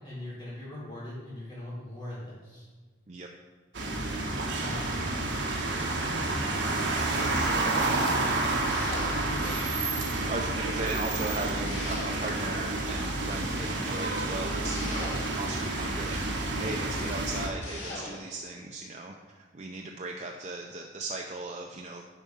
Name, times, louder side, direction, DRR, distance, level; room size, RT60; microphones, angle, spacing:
voice 1, 0.0-2.7 4.5-4.9 7.0-8.0 9.0-9.7, left 1 dB, 25° left, -12 dB, 2.7 m, -41 dB
sound 1, 3.7-17.5, right 2 dB, 65° right, 1.3 m, -29 dB
voice 2, 4.5-5.4 7.2-7.7 10.1-16.2 16.6-22.0, right 2 dB, 35° right, 1 dB, 0.5 m, -38 dB
sound 2, 8.6-9.5 11.6-12.6 14.6-15.7 17.6-18.4, left 2 dB, 80° left, 2.4 m, -41 dB
10.0 x 4.6 x 5.5 m, 1.4 s
head